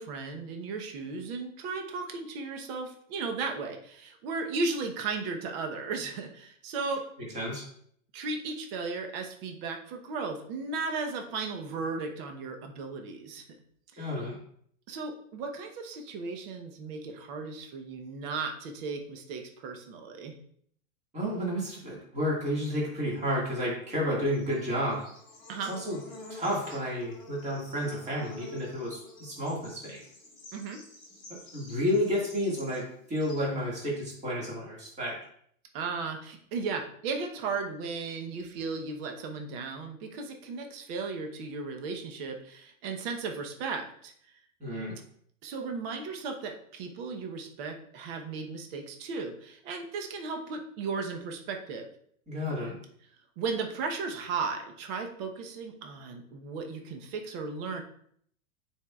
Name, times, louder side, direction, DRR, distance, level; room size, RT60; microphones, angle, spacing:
voice 1, 0.0-7.0 8.1-13.4 14.9-20.3 25.5-25.7 30.5-30.8 35.7-44.1 45.4-51.9 53.4-57.8, right 4 dB, 45° right, 4 dB, 0.9 m, -35 dB
voice 2, 14.0-14.4 21.1-25.0 25.7-26.0 26.3-30.0 31.5-35.2 44.6-45.0 52.3-52.8, equal, 15° right, -4 dB, 1.9 m, -31 dB
Bird / Insect, 23.9-34.5, left 2 dB, 10° left, 2.3 m, -50 dB
9.4 x 4.6 x 2.3 m, 0.64 s
supercardioid pair, 150°, 41 cm